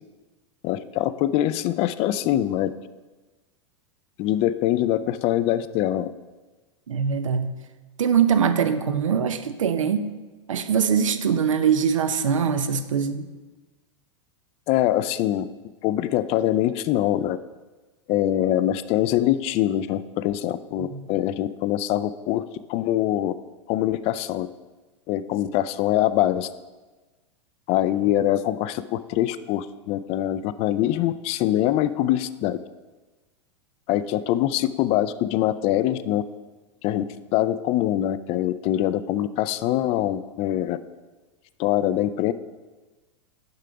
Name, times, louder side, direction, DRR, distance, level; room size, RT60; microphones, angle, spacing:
voice 1, 0.6-2.7 4.2-6.1 14.7-15.5 15.8-17.4 18.1-22.4 22.7-23.3 23.7-24.5 25.1-26.5 27.7-32.6 33.9-36.2 36.8-37.0 37.3-40.8 41.6-42.3, left 13 dB, 40° left, 14 dB, 0.4 m, -23 dB
voice 2, 6.9-7.5 8.0-10.1 10.5-13.3 20.8-21.0, right 7 dB, 80° right, 10 dB, 0.6 m, -22 dB
6.7 x 5.7 x 5.0 m, 1.2 s
hypercardioid pair, 105°, 16 cm